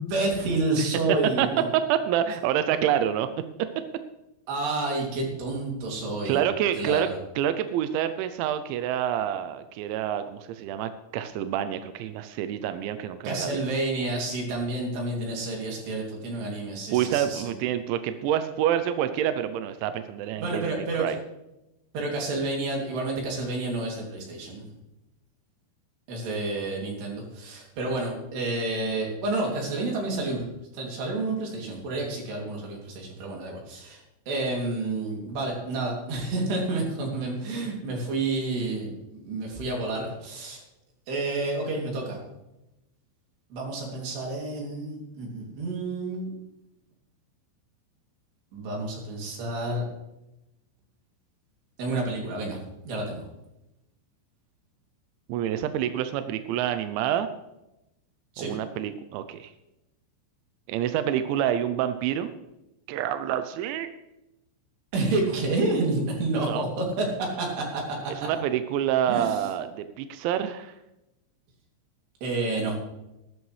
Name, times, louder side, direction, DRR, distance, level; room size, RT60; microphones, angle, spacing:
voice 1, 0.0-1.7 4.5-6.4 6.7-7.2 13.2-17.5 20.4-21.1 21.9-24.7 26.1-30.5 30.7-34.0 34.3-40.6 41.1-42.2 43.5-46.3 48.5-49.8 51.8-52.6 52.8-53.3 58.3-58.6 64.9-68.3 69.1-69.4 72.2-72.8, right 2 dB, 55° right, -1 dB, 4.6 m, -29 dB
voice 2, 1.7-3.3 3.6-3.7 6.3-7.1 7.4-13.6 16.9-21.2 55.3-57.3 58.4-59.5 60.7-62.3 62.9-63.9 66.3-66.6 68.2-70.8, right 10 dB, 85° right, 10 dB, 2.7 m, -27 dB
15.5 x 12.5 x 3.3 m, 0.91 s
omnidirectional pair, 5.9 m